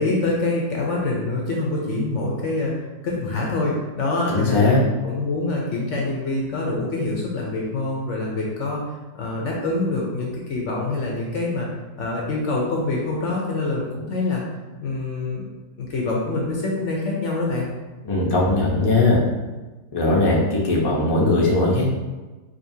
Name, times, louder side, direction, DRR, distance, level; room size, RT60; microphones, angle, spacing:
voice 1, 0.0-4.7 5.0-8.8 9.1-11.7 12.0-14.4 14.8-15.4 15.8-17.7, left 2 dB, 60° left, -2 dB, 0.9 m, -25 dB
voice 2, 4.3-4.8 18.0-19.2 19.9-21.9, left 2 dB, 25° left, -4 dB, 0.5 m, -19 dB
5.0 x 2.8 x 2.7 m, 1.2 s
omnidirectional pair, 1.6 m